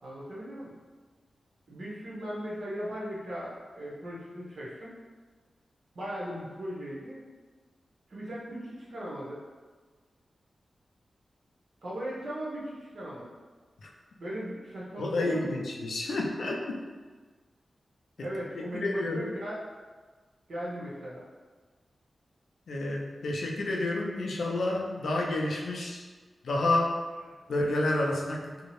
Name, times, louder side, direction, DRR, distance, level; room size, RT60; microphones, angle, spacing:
voice 1, 0.0-0.8 1.7-4.9 5.9-7.2 8.1-9.4 11.8-13.3 14.2-15.6 18.2-19.5 20.5-21.3 27.3-27.4, equal, 75° right, -7 dB, 0.8 m, -38 dB
voice 2, 15.0-16.9 18.5-19.3 22.7-26.0 26.4-27.0 27.5-28.5, left 2 dB, 85° left, 0 dB, 0.4 m, -29 dB
2.6 x 2.0 x 2.9 m, 1.4 s
wide cardioid pair, 90°, 0 cm